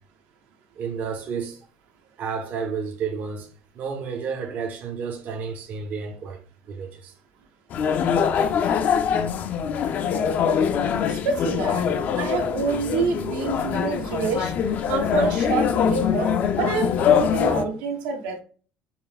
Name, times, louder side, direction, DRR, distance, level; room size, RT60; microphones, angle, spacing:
voice 1, 0.8-1.7 2.2-3.5 3.7-6.4 6.7-7.1 17.0-17.1, right 6 dB, 45° right, 0.7 m, -31 dB
sound 1, 7.7-17.6, left 7 dB, 45° left, 0.5 m, -23 dB
voice 2, 11.1-11.9 12.2-14.5 14.9-18.4, right 4 dB, 80° right, 1.1 m, -27 dB
5.5 x 2.1 x 3.9 m
cardioid pair, 130°, 4 cm